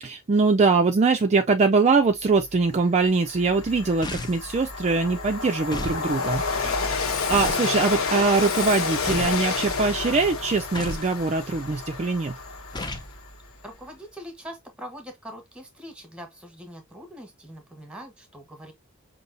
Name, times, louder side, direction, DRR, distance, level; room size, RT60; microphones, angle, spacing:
voice 1, 0.0-12.3, right 4 dB, 30° right, 0.4 m, -22 dB
Train, 2.5-2.6 3.0-13.4, left 4 dB, 65° left, 1.3 m, -30 dB
sound 1, 4.0-4.5 5.7-6.0 7.3-7.7 9.1-9.5 10.7-11.1 12.7-13.1, left 2 dB, 20° left, 0.7 m, -33 dB
voice 2, 13.6-18.7, equal, 5° right, 1.2 m, -42 dB
5.4 x 2.8 x 2.6 m
head